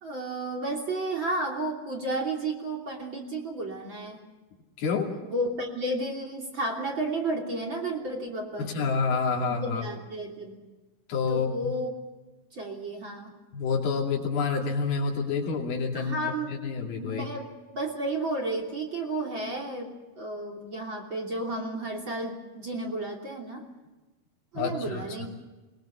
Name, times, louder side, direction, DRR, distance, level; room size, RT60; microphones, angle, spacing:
voice 1, 0.0-4.2 5.0-8.9 9.6-10.6 11.3-12.0 12.5-13.3 15.9-16.6 17.0-23.6 24.5-25.3, right 2 dB, 35° right, 1 dB, 3.4 m, -32 dB
voice 2, 4.8-5.1 8.6-9.8 11.1-11.7 13.5-16.2 16.5-17.3 24.5-25.3, left 5 dB, 85° left, -1 dB, 4.6 m, -28 dB
22.5 x 21.5 x 7.1 m, 1.2 s
omnidirectional pair, 4.3 m